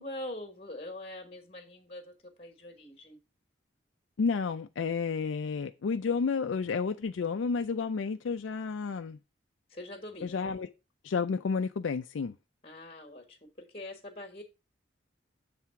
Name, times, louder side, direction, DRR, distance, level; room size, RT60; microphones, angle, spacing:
voice 1, 0.0-3.2 9.7-10.4 12.6-14.4, left 1 dB, 30° left, 1.4 m, -43 dB
voice 2, 4.2-9.2 10.2-10.7 11.0-12.3, left 5 dB, 85° left, 0.4 m, -31 dB
7.4 x 3.5 x 5.6 m
head